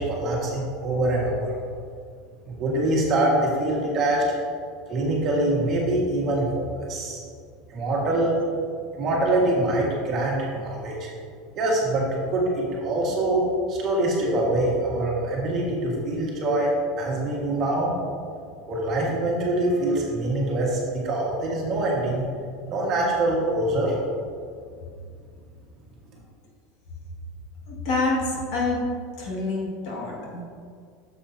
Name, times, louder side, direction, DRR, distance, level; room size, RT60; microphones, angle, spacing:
voice 1, 0.0-1.5 2.5-4.4 4.9-7.2 7.7-8.4 8.9-11.1 11.5-13.4 13.7-16.7 17.0-17.9 18.7-22.2 22.7-23.9, right 1 dB, 35° right, -3 dB, 1.6 m, -24 dB
voice 2, 27.7-28.8 29.2-30.4, left 3 dB, 55° left, -3 dB, 1.9 m, -27 dB
9.0 x 7.0 x 2.7 m, 2.2 s
supercardioid pair, 160°, 0 cm